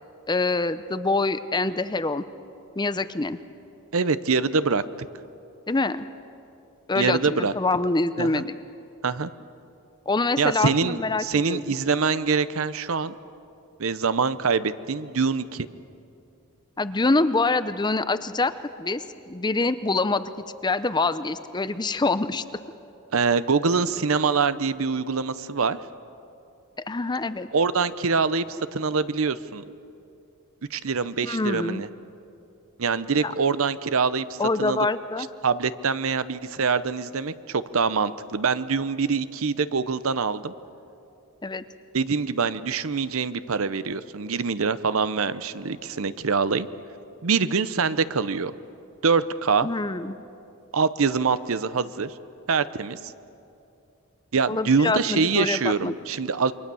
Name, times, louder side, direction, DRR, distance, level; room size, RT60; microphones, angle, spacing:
voice 1, 0.3-2.2 2.8-3.4 5.7-6.1 6.9-8.6 10.1-11.6 16.8-18.5 18.8-20.3 20.6-22.4 26.9-27.5 31.2-31.8 33.2-33.3 34.4-35.3 41.4-41.6 49.6-50.2 54.5-55.9, left 3 dB, 20° left, 13 dB, 0.6 m, -25 dB
voice 2, 3.9-4.8 7.0-7.5 8.2-8.4 9.0-9.3 10.4-13.1 13.8-15.7 23.1-25.8 27.5-29.6 30.7-31.9 32.8-34.9 35.4-40.5 41.9-46.7 47.2-48.5 49.0-49.7 50.7-52.1 52.5-53.1 54.3-56.5, right 5 dB, 65° right, 14 dB, 0.7 m, -24 dB
28.0 x 23.5 x 7.0 m, 2.7 s
head